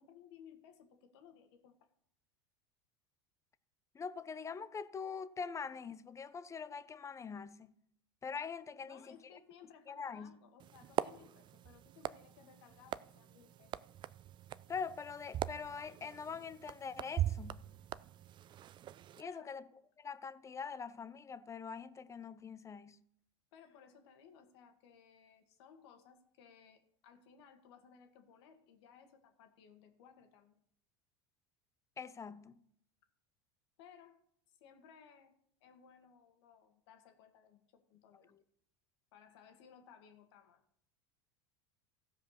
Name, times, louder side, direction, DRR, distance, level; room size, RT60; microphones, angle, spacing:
voice 1, 0.0-1.9 8.8-13.7 19.2-19.5 23.5-30.6 33.8-34.2 34.5-35.3 35.6-38.3 39.1-40.6, left 7 dB, 75° left, 1.9 m, -60 dB
voice 2, 3.9-7.7 8.2-9.2 9.9-10.4 14.7-17.6 19.2-19.6 20.0-23.0 32.0-32.6, left 6 dB, 20° left, 0.7 m, -43 dB
sound 1, 10.6-19.2, right 12 dB, 35° right, 0.4 m, -42 dB
15.5 x 5.1 x 6.5 m
hypercardioid pair, 100°, 14 cm